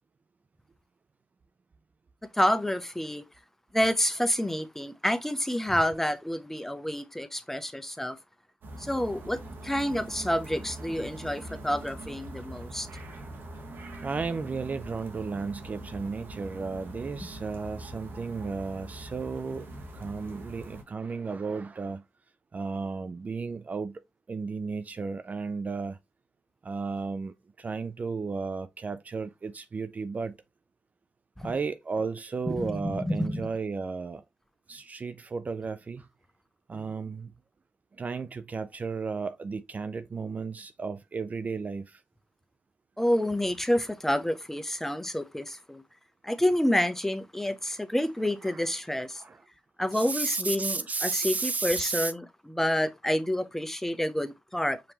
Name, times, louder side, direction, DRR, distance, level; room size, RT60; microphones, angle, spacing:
voice 1, 2.3-3.2 3.7-8.2 8.8-12.9 17.2-17.3 31.4-31.5 32.5-33.5 36.7-36.8 43.0-45.8 46.2-49.2 49.8-54.8, left 1 dB, 10° left, 0.7 m, -28 dB
sound 1, 8.6-20.8, right 1 dB, 65° right, 1.2 m, -43 dB
voice 2, 14.0-22.0 22.5-24.0 24.3-26.0 26.6-30.3 31.4-34.2 34.7-36.1 36.7-37.3 37.9-42.0 48.2-49.5 49.9-52.1, right 4 dB, 40° right, 0.4 m, -34 dB
5.0 x 3.0 x 2.9 m
supercardioid pair, 50°, 4 cm